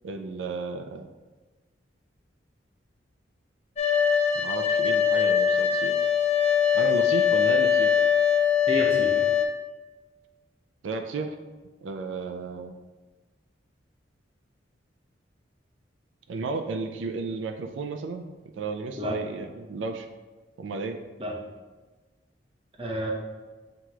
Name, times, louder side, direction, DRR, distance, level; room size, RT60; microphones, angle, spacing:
voice 1, 0.0-1.1 4.3-6.1 6.7-7.9 10.8-11.3 11.8-12.8 16.3-20.1 20.6-21.0, right 4 dB, 85° right, 5 dB, 0.4 m, -33 dB
sound 1, 3.8-9.5, left 8 dB, 35° left, 0.4 m, -22 dB
voice 2, 8.7-9.3 19.0-19.2 21.2-21.3 22.8-23.1, equal, 30° right, -2 dB, 0.8 m, -30 dB
7.7 x 2.9 x 2.3 m, 1.3 s
head